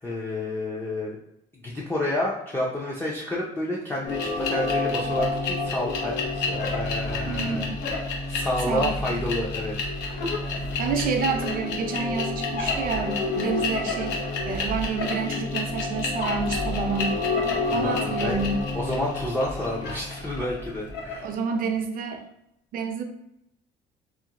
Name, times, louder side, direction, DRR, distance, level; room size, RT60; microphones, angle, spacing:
voice 1, 0.0-1.2 1.6-7.7 8.3-9.7 10.0-10.3 17.7-18.4 18.7-21.3, left 1 dB, 15° left, -5 dB, 0.5 m, -30 dB
sound 1, 4.0-21.3, left 3 dB, 85° left, 0.7 m, -29 dB
voice 2, 7.3-7.8 8.7-9.2 10.8-17.2 17.7-18.6 21.2-22.2 22.7-23.0, right 5 dB, 55° right, 5 dB, 0.5 m, -29 dB
2.6 x 2.4 x 2.8 m, 0.80 s
cardioid pair, 110°, 17 cm